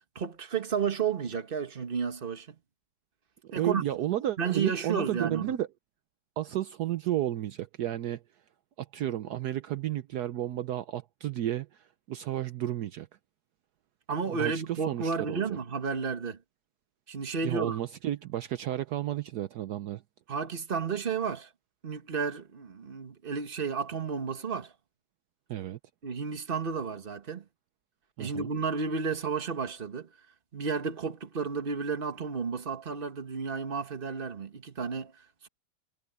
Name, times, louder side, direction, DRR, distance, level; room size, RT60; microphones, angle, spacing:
voice 1, 0.0-2.5 3.5-3.8 4.4-5.5 14.1-16.4 17.1-17.8 20.3-21.5 21.8-24.7 26.0-27.4 28.2-30.1 30.5-35.5, right 5 dB, 35° right, 1.5 m, -32 dB
voice 2, 3.4-5.7 6.4-8.2 8.8-13.1 14.4-15.4 17.4-20.0 25.5-25.8 28.2-28.5, right 12 dB, 70° right, 1.2 m, -32 dB
omnidirectional pair, 1.9 m